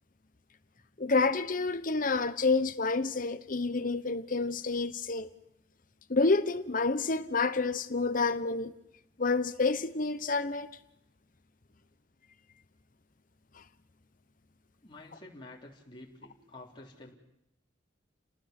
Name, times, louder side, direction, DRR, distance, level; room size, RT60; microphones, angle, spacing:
voice 1, 1.0-5.3 6.1-8.7 9.2-10.7, left 3 dB, 50° left, 1.0 m, -28 dB
voice 2, 14.8-17.1, left 2 dB, 25° left, 3.6 m, -50 dB
30.0 x 19.5 x 6.0 m
head